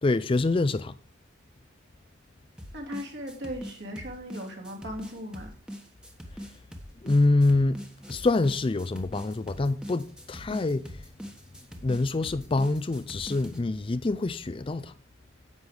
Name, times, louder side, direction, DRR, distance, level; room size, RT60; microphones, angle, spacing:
voice 1, 0.0-0.9 7.0-7.8 8.1-10.9 11.8-14.9, left 2 dB, 25° left, 0.4 m, -25 dB
sound 1, 2.6-13.6, equal, 5° right, 1.3 m, -43 dB
voice 2, 2.7-5.5, equal, 55° right, 2.7 m, -38 dB
10.5 x 8.1 x 4.8 m
head